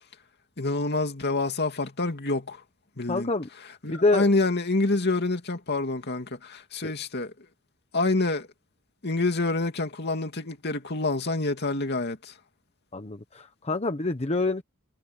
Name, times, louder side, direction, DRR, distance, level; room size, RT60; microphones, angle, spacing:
voice 1, 0.6-2.6 3.0-3.3 3.8-7.3 7.9-8.5 9.0-12.3, left 2 dB, 55° left, 2.7 m, -27 dB
voice 2, 3.1-3.5 3.9-4.3 6.8-6.9 12.9-14.6, left 3 dB, 30° left, 1.0 m, -26 dB
head